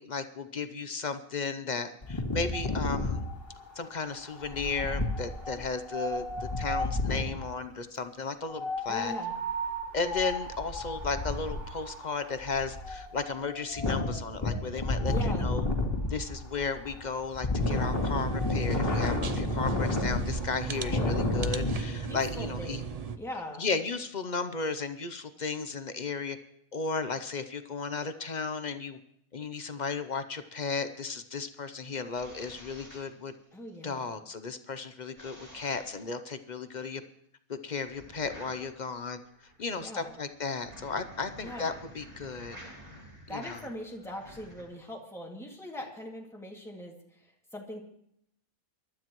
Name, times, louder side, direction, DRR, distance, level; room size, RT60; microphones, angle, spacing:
voice 1, 0.0-3.2 3.8-9.1 9.9-15.6 16.1-22.8 23.6-26.4 26.7-29.0 29.3-33.3 33.8-37.0 37.5-39.2 39.6-42.6 43.3-43.6, left 4 dB, 40° left, 10 dB, 0.7 m, -34 dB
Wind, 2.0-7.4 8.5-21.8, left 2 dB, 15° left, 2.5 m, -32 dB
voice 2, 8.9-9.3 15.1-15.5 20.7-21.2 22.0-22.7 23.1-23.7 33.5-34.1 39.7-40.2 41.4-41.7 43.3-47.8, left 1 dB, ahead, -1 dB, 2.1 m, -41 dB
sound 1, 17.6-23.2, right 6 dB, 45° right, 0.5 m, -36 dB
sound 2, 31.9-33.8 35.2-36.1 37.8-44.6, equal, 25° right, 4.7 m, -50 dB
23.5 x 12.5 x 3.1 m, 0.71 s
omnidirectional pair, 1.5 m